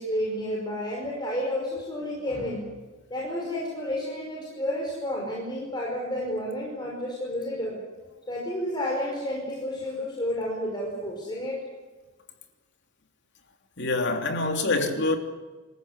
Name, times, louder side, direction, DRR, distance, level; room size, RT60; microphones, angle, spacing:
voice 1, 0.0-2.6 3.1-7.8 8.3-11.6, left 1 dB, 20° left, 5.4 m, -31 dB
voice 2, 13.8-15.2, left 2 dB, 55° left, 3.2 m, -25 dB
26.5 x 14.5 x 9.9 m
head